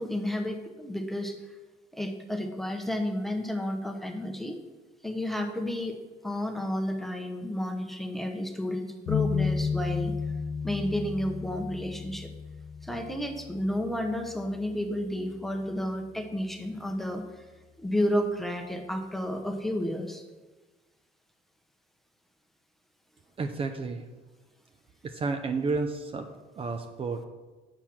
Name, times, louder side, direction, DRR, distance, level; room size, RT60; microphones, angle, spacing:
voice 1, 0.0-1.5 1.9-4.6 5.0-6.0 6.2-10.1 10.6-12.3 12.8-17.4 17.8-20.2, left 1 dB, ahead, 4 dB, 1.0 m, -31 dB
sound 1, 9.1-14.8, left 5 dB, 75° left, 0.6 m, -33 dB
voice 2, 23.4-24.1 25.0-26.3 26.6-27.2, right 4 dB, 35° right, 6 dB, 0.6 m, -31 dB
6.8 x 5.9 x 6.1 m, 1.2 s
cardioid pair, 110°, 17 cm